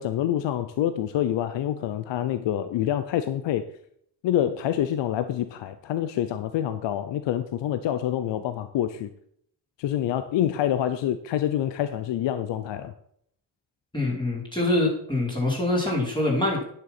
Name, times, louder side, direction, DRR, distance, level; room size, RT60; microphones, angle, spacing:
voice 1, 0.0-3.7 4.2-9.1 9.8-12.9, left 11 dB, 80° left, 12 dB, 0.7 m, -26 dB
voice 2, 13.9-16.7, left 2 dB, 10° left, -4 dB, 4.7 m, -25 dB
9.7 x 6.8 x 6.0 m, 0.67 s
cardioid pair, 65°, 42 cm